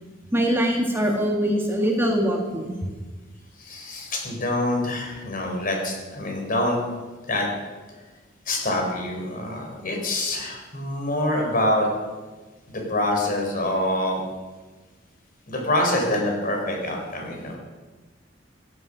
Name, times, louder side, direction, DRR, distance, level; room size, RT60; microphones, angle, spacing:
voice 1, 0.3-2.7, equal, 10° right, 1 dB, 1.7 m, -23 dB
voice 2, 3.6-6.8 7.3-7.5 8.5-11.9 12.7-14.2 15.5-17.6, left 1 dB, 50° left, 1 dB, 4.1 m, -25 dB
16.0 x 11.0 x 6.3 m, 1.3 s
head